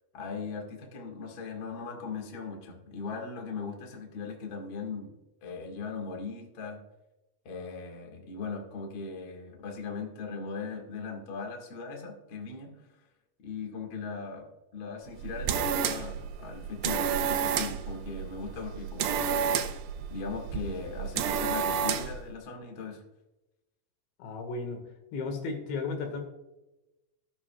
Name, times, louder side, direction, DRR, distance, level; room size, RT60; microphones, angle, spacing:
voice 1, 0.1-5.1 5.4-6.8 7.4-12.9 13.4-19.5 20.1-23.0, left 4 dB, 50° left, 1 dB, 1.4 m, -39 dB
sound 1, 15.1-22.3, right 7 dB, 80° right, 2.2 m, -31 dB
voice 2, 24.2-24.8 25.1-26.2, left 4 dB, 80° left, 3 dB, 4.0 m, -34 dB
17.5 x 8.6 x 2.4 m, 0.99 s
omnidirectional pair, 5.2 m